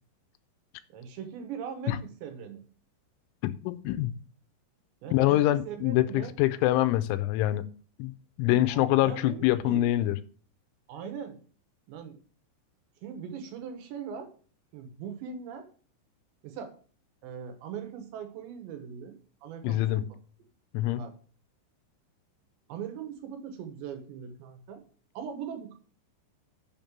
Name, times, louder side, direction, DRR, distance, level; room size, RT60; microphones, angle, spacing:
voice 1, 0.9-2.6 5.0-6.3 8.4-9.9 10.9-11.4 11.9-12.2 13.0-14.3 14.7-15.7 16.4-16.7 17.2-20.1 21.0-21.1 22.7-24.8 25.1-25.7, right 7 dB, 75° right, 3.2 m, -40 dB
voice 2, 3.4-4.2 5.1-7.7 8.0-8.1 8.4-10.2 19.6-20.1 20.7-21.1, left 15 dB, 85° left, 2.9 m, -25 dB
7.1 x 5.3 x 7.2 m
omnidirectional pair, 5.5 m